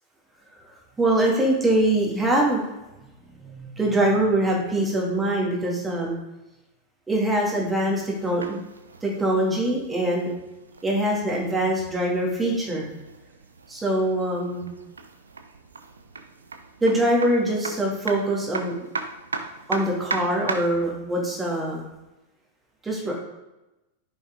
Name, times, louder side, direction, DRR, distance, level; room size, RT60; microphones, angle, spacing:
voice 1, 0.7-2.7 3.4-6.1 7.1-8.6 9.0-10.3 10.8-12.9 13.7-14.7 16.8-18.9 19.7-21.8 22.8-23.2, right 1 dB, 10° right, -3 dB, 2.5 m, -23 dB
sound 1, 7.6-20.9, right 4 dB, 75° right, 0.7 m, -38 dB
7.0 x 6.1 x 3.8 m, 0.99 s
figure-of-eight pair, 90°, 0 cm